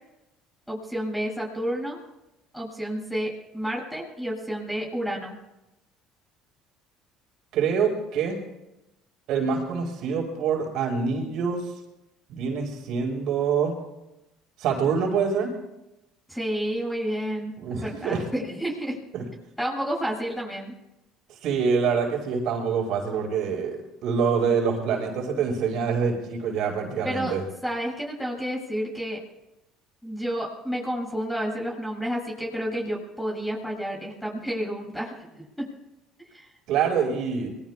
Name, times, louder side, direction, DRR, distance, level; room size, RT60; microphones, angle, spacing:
voice 1, 0.7-2.0 2.5-5.4 16.3-17.5 17.8-19.0 19.6-20.7 27.0-27.4 27.6-29.2 30.0-35.7 36.3-36.5, equal, ahead, -1 dB, 7.6 m, -30 dB
voice 2, 7.5-8.4 9.3-11.6 12.3-13.7 14.6-15.5 17.6-18.2 19.1-19.2 21.4-27.4 36.7-37.5, right 6 dB, 65° right, 2 dB, 5.5 m, -25 dB
25.5 x 21.5 x 2.5 m, 0.94 s
supercardioid pair, 80°, 0 cm